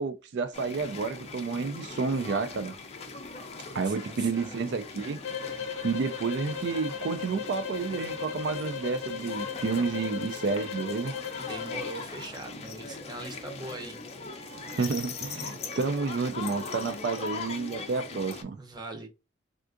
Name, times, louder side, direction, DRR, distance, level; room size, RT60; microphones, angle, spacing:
voice 1, 0.0-2.7 3.7-5.2 5.8-11.1 14.7-18.6, right 4 dB, 60° right, 0.3 m, -30 dB
sound 1, 0.5-18.4, left 4 dB, 35° left, 0.5 m, -40 dB
voice 2, 3.9-4.8 11.4-14.0 18.5-19.1, right 2 dB, 20° right, 0.7 m, -41 dB
sound 2, 5.2-12.0, left 7 dB, 85° left, 0.5 m, -37 dB
3.5 x 2.4 x 2.5 m
head